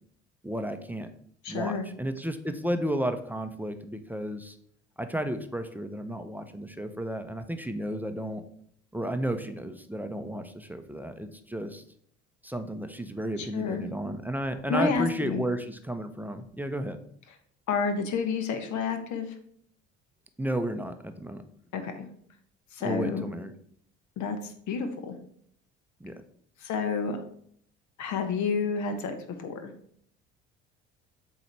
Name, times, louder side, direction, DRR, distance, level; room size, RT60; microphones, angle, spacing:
voice 1, 0.4-1.1 1.5-4.6 5.0-8.4 8.9-11.8 12.4-17.0 20.4-21.4 22.8-23.5 26.0-26.2, right 1 dB, 5° right, 7 dB, 0.7 m, -33 dB
voice 2, 1.4-1.9 13.4-13.8 14.7-15.4 17.7-19.3 21.7-22.1 22.7-23.3 24.2-25.1 26.6-27.2 28.0-29.7, left 5 dB, 55° left, 6 dB, 1.2 m, -30 dB
7.8 x 3.1 x 4.5 m, 0.63 s
hypercardioid pair, 55°, 34 cm